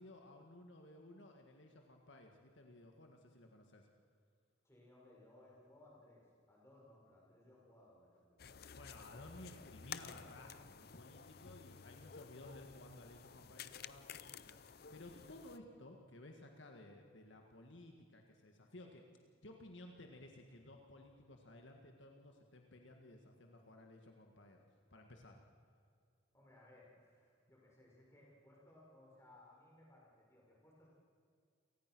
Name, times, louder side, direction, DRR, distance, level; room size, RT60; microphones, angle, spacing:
voice 1, 0.0-3.9 8.7-19.1 19.4-24.6 24.9-25.4, left 1 dB, 65° left, 2 dB, 1.8 m, -56 dB
voice 2, 4.6-8.4 26.3-30.9, left 1 dB, 15° left, -4 dB, 5.8 m, -63 dB
sound 1, 8.4-15.6, left 7 dB, 50° left, 0.6 m, -53 dB
28.5 x 19.0 x 6.2 m, 2.2 s
head